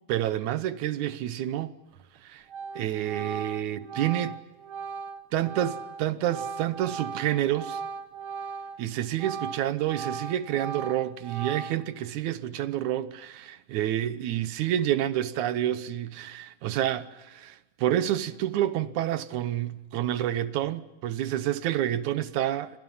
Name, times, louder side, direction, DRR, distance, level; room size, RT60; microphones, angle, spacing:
voice 1, 0.1-1.7 2.2-2.4 2.8-4.4 5.3-7.8 8.8-22.8, right 12 dB, 70° right, 2.1 m, -29 dB
Organ, 1.9-2.2 2.5-8.8 9.1-12.0, right 5 dB, 85° right, 1.1 m, -38 dB
29.0 x 25.0 x 5.6 m
omnidirectional pair, 4.1 m